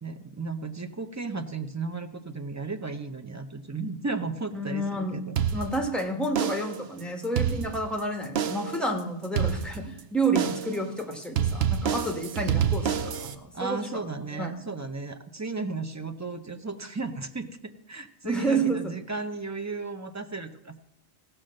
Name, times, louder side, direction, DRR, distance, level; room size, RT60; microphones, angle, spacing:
voice 1, 0.0-5.3 13.5-20.8, right 3 dB, 25° right, 7 dB, 0.4 m, -35 dB
voice 2, 4.5-5.2 5.5-14.5 18.2-18.9, right 2 dB, ahead, 3 dB, 1.3 m, -30 dB
sound 1, 5.4-6.0 6.4-6.9 7.2-8.0 8.4-8.8 9.4-10.0 10.4-10.8 11.4-13.4, right 8 dB, 60° right, 0.8 m, -27 dB
16.0 x 6.1 x 6.5 m, 0.86 s
omnidirectional pair, 1.3 m